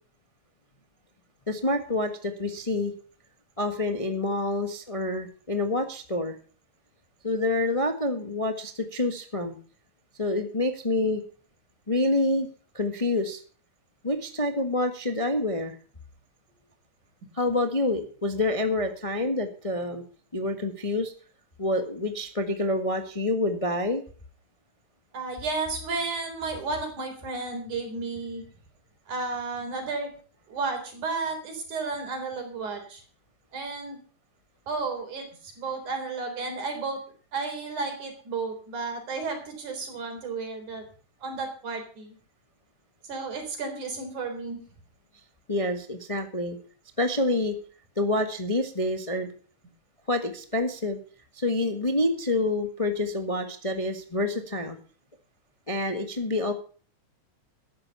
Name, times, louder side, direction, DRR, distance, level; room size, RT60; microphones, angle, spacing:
voice 1, 1.5-2.9 3.6-6.3 7.2-9.6 10.2-11.2 11.9-12.5 12.7-13.4 14.0-15.8 17.3-20.0 20.3-21.1 21.6-24.0 45.5-46.6 47.0-47.5 48.0-49.3 50.1-51.0 51.3-54.8 55.7-56.5, left 2 dB, 20° left, 7 dB, 0.8 m, -27 dB
voice 2, 25.1-28.4 29.1-30.1 30.5-33.0 33.5-34.0 34.7-37.0 37.3-40.9 41.2-42.2 43.0-44.6, right 4 dB, 80° right, 5 dB, 5.3 m, -33 dB
13.5 x 11.0 x 5.6 m, 0.41 s
omnidirectional pair, 3.4 m